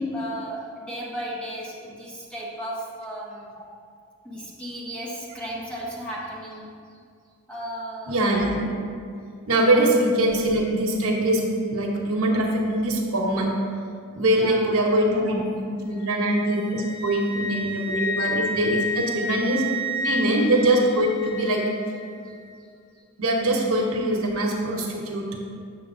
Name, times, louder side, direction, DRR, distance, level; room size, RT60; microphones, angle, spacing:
voice 1, 0.0-3.5 4.2-6.7 7.5-8.3 9.3-9.4 14.3-14.7 22.2-22.3, equal, 5° left, -5 dB, 1.0 m, -35 dB
voice 2, 8.1-8.6 9.5-11.4 11.7-13.5 14.1-19.6 20.0-21.7 23.2-25.3, right 1 dB, 75° right, 0 dB, 1.0 m, -23 dB
Wind instrument woodwind instrument, 16.0-22.0, left 1 dB, 55° left, 0.8 m, -31 dB
7.5 x 6.8 x 2.6 m, 2.3 s
head